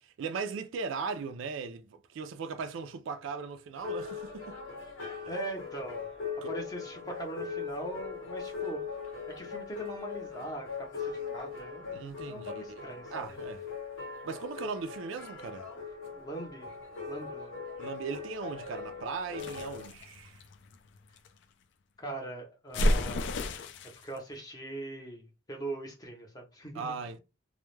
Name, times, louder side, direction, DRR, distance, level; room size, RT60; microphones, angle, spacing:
voice 1, 0.0-4.6 6.4-6.5 11.9-12.8 13.1-13.6 14.2-15.7 17.8-20.4 26.7-27.2, right 5 dB, 75° right, 0.3 m, -38 dB
sound 1, 3.7-19.9, left 6 dB, 80° left, 1.0 m, -40 dB
voice 2, 5.3-6.1 6.4-9.0 9.4-13.4 16.1-16.8 17.1-17.6 22.0-23.3 24.0-26.9, right 2 dB, 20° left, 0.6 m, -41 dB
sound 2, 19.4-21.3 22.7-24.0, left 1 dB, 60° left, 0.3 m, -31 dB
2.2 x 2.0 x 3.0 m
head